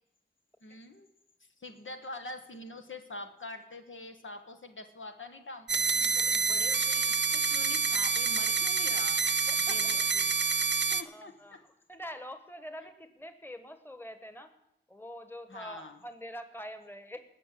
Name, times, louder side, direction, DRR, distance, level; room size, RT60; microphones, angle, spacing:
voice 1, 0.6-1.1 1.6-9.2 9.7-10.3 10.8-11.7 15.5-16.0, left 2 dB, 85° left, 6 dB, 1.3 m, -45 dB
sound 1, 5.7-11.0, right 5 dB, 70° right, 0.7 m, -27 dB
voice 2, 9.5-10.0 11.0-11.6 11.9-14.5 14.9-17.2, equal, 10° left, 9 dB, 1.4 m, -45 dB
19.0 x 6.5 x 7.6 m, 0.84 s
wide cardioid pair, 50°, 20 cm